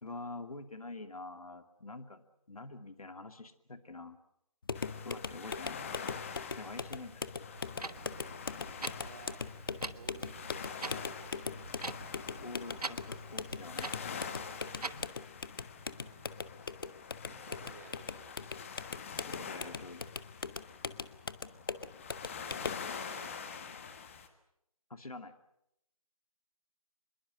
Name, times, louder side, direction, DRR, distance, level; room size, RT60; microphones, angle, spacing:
voice 1, 0.0-4.2 5.0-5.9 6.6-7.2 12.4-13.9 19.3-20.1 24.9-25.3, left 3 dB, 70° left, 8 dB, 2.5 m, -46 dB
sound 1, 4.6-22.9, left 5 dB, 35° left, 0.9 m, -41 dB
sound 2, 4.7-24.3, left 6 dB, 20° left, 1.5 m, -46 dB
Clock, 7.6-15.1, right 3 dB, 85° right, 1.3 m, -45 dB
voice 2, 8.9-9.5 9.8-11.6 15.8-16.3 17.2-18.6 22.3-23.5, right 5 dB, 30° right, 5 dB, 2.7 m, -57 dB
25.5 x 22.0 x 7.8 m, 0.79 s
figure-of-eight pair, 165°, 19 cm